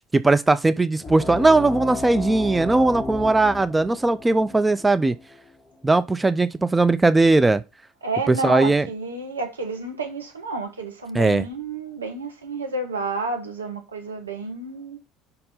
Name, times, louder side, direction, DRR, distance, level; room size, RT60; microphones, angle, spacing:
voice 1, 0.1-5.1 5.8-7.6 8.3-8.9 11.1-11.5, right 2 dB, 15° right, 0.4 m, -19 dB
sound 1, 1.0-6.1, left 2 dB, 5° left, 2.3 m, -34 dB
voice 2, 8.0-15.0, right 3 dB, 85° right, 1.2 m, -30 dB
5.4 x 4.3 x 5.4 m
figure-of-eight pair, 65°, 0 cm